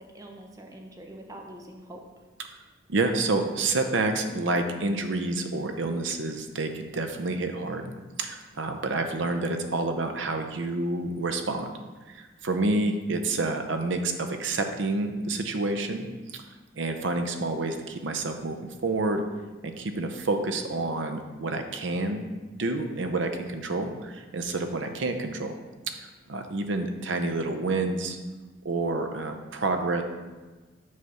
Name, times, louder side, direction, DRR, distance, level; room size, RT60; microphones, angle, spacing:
voice 1, 0.0-2.0, right 1 dB, 20° right, 2 dB, 0.5 m, -44 dB
voice 2, 2.9-7.9 8.2-11.7 12.1-16.4 16.7-19.2 19.6-22.3 22.6-25.5 25.9-28.2 28.6-30.0, right 2 dB, 75° right, 6 dB, 0.6 m, -29 dB
6.5 x 3.5 x 5.4 m, 1.3 s
head